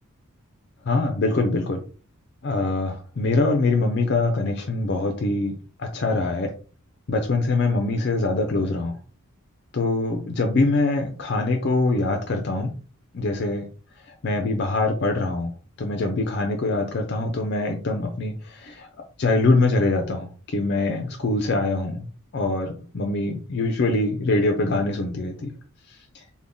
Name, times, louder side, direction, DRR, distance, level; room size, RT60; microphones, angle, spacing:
voice 1, 0.9-1.8 2.4-6.5 7.1-9.0 9.7-12.7 13.1-13.7 14.2-15.5 15.8-18.9 19.2-22.1 22.3-25.5, left 2 dB, 50° left, 4 dB, 0.4 m, -23 dB
3.6 x 2.1 x 3.7 m, 0.39 s
head